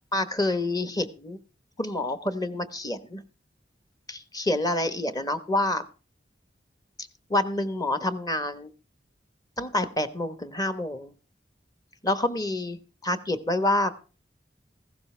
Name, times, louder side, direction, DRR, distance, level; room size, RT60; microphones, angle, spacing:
voice 1, 0.1-1.4 1.8-3.2 4.1-5.8 7.3-8.7 9.6-11.1 12.0-13.9, left 1 dB, 20° left, 11 dB, 1.2 m, -27 dB
15.5 x 12.5 x 3.3 m, 0.35 s
head